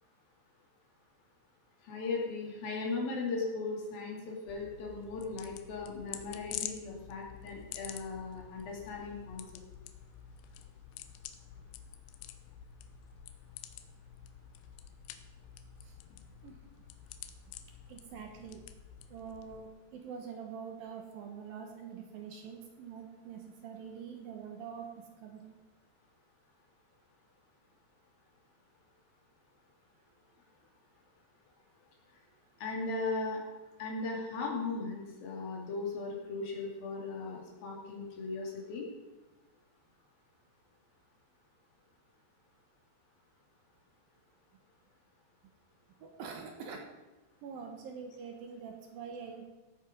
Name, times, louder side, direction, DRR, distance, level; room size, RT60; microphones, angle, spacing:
voice 1, 1.8-9.4 32.6-33.4 33.8-38.9, left 3 dB, 60° left, -1 dB, 4.1 m, -37 dB
sound 1, 4.5-19.7, left 10 dB, 90° left, 3.0 m, -48 dB
voice 2, 17.9-18.6 19.1-25.5 46.0-46.9 47.4-49.5, right 6 dB, 65° right, 3 dB, 2.7 m, -45 dB
17.0 x 8.9 x 5.3 m, 1.1 s
omnidirectional pair, 4.9 m